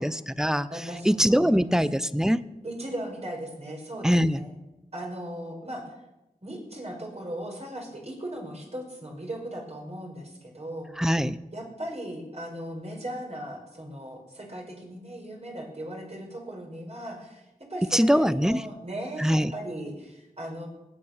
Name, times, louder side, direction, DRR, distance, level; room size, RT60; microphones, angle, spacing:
voice 1, 0.0-0.7 1.0-2.4 4.0-4.4 11.0-11.4 17.9-18.6 19.2-19.5, equal, 5° right, 15 dB, 0.7 m, -22 dB
voice 2, 0.7-1.8 2.6-4.6 4.9-5.9 6.4-10.9 11.5-17.4 17.7-20.7, right 1 dB, 45° right, 0 dB, 5.3 m, -37 dB
19.0 x 8.5 x 6.6 m, 0.96 s
cardioid pair, 45°, 15 cm